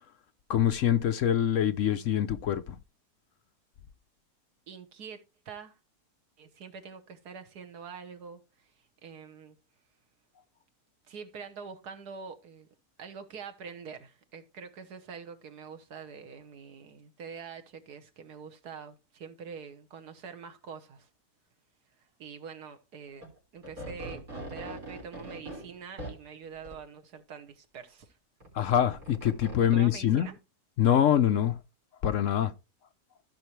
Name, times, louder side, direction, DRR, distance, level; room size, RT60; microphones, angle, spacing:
voice 1, 0.5-2.8 28.5-30.3 30.8-31.5 32.0-32.5, left 10 dB, 65° left, 0.9 m, -25 dB
voice 2, 4.7-5.8 6.4-8.7 9.0-9.6 11.1-12.7 13.0-21.1 22.0-23.3 23.5-28.2 29.6-30.4, right 6 dB, 85° right, 1.7 m, -45 dB
sound 1, 23.2-23.3 23.6-26.2 26.6-26.8 28.4-29.6, right 1 dB, 60° right, 4.4 m, -41 dB
15.0 x 5.7 x 3.2 m
omnidirectional pair, 1.6 m